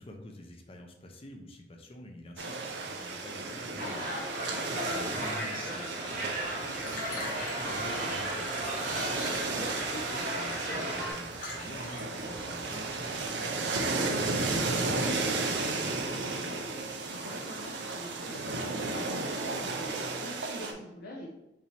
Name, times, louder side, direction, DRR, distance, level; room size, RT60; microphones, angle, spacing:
voice 1, 0.0-13.2, left 1 dB, 35° left, 3 dB, 0.6 m, -47 dB
sound 1, 2.4-20.7, right 3 dB, 80° right, 0.6 m, -34 dB
sound 2, 3.8-11.1, right 1 dB, 50° right, 1.0 m, -36 dB
voice 2, 4.8-5.1 9.9-10.2 13.9-21.3, equal, 65° left, -3 dB, 0.7 m, -45 dB
Liquid, 6.4-14.5, left 2 dB, 50° left, 1.3 m, -47 dB
5.2 x 2.8 x 3.3 m, 0.93 s
head